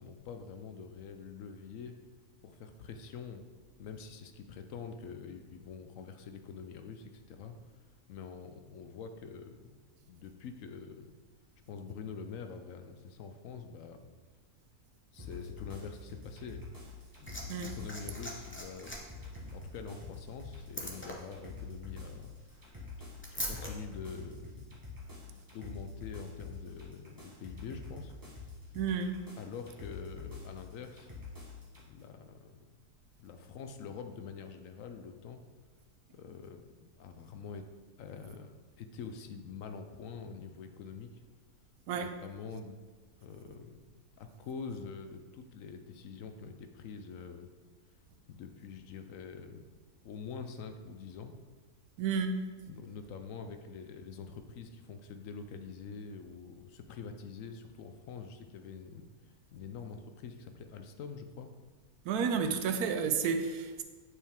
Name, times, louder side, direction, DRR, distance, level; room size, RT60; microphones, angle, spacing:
voice 1, 0.0-2.0 2.4-3.4 3.8-9.8 10.1-11.1 11.7-14.1 15.1-16.7 17.2-18.9 19.4-22.3 23.0-24.8 25.2-28.1 29.4-31.1 31.9-32.7 33.2-35.4 36.1-37.7 38.0-41.2 42.0-42.8 43.2-47.5 47.9-48.0 48.3-49.6 50.0-51.3 52.7-61.5, left 5 dB, 70° left, 0.9 m, -46 dB
sound 1, 15.2-31.8, left 4 dB, 15° right, 1.1 m, -47 dB
Liquid, 16.9-23.7 24.8-24.9, equal, 15° left, 0.5 m, -44 dB
voice 2, 28.7-29.2 41.9-42.1 52.0-52.5 62.0-63.8, right 6 dB, 80° right, 1.1 m, -31 dB
8.4 x 4.7 x 3.5 m
omnidirectional pair, 1.6 m